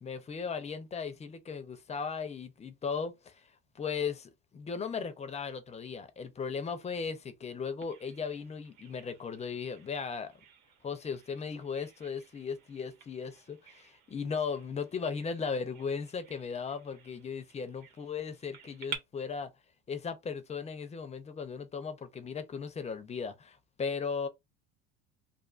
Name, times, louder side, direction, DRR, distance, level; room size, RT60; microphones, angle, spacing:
voice 1, 0.0-3.5 3.7-10.3 10.8-19.5 19.9-24.3, left 5 dB, 20° left, 0.5 m, -37 dB
Bird vocalization bird call bird song, 7.8-19.0, right 7 dB, 70° right, 1.0 m, -51 dB
2.5 x 2.4 x 2.4 m
supercardioid pair, 110°, 32 cm